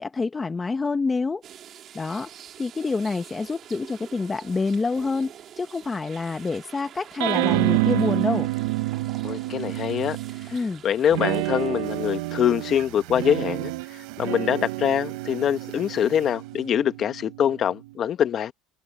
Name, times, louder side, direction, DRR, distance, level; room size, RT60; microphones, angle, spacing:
voice 1, 0.0-1.4 1.9-2.3 2.6-8.5 10.5-10.8, left 4 dB, 15° left, 0.7 m, -27 dB
sound 1, 1.4-13.6 14.1-14.2 16.5-16.7, right 10 dB, 35° right, 2.1 m, -47 dB
sound 2, 7.2-10.6 11.1-17.9, right 20 dB, 80° right, 0.7 m, -28 dB
voice 2, 9.2-10.2 10.4-10.5 10.8-18.5, left 9 dB, 35° left, 1.3 m, -24 dB
sound 3, 11.8-17.0, right 24 dB, 65° right, 5.9 m, -49 dB
cardioid pair, 145°, 0 cm